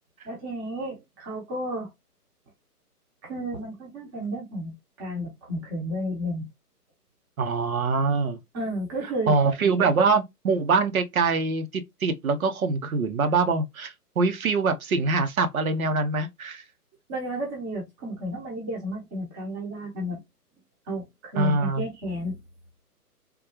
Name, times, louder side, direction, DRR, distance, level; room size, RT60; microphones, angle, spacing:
voice 1, 0.2-1.9 3.2-6.4 8.5-9.3 17.1-20.2 20.9-22.4, equal, 15° right, 0.8 m, -32 dB
voice 2, 7.4-8.4 9.3-16.6 21.4-21.8, right 4 dB, 60° right, 0.8 m, -24 dB
3.7 x 2.2 x 2.8 m
hypercardioid pair, 150°, 47 cm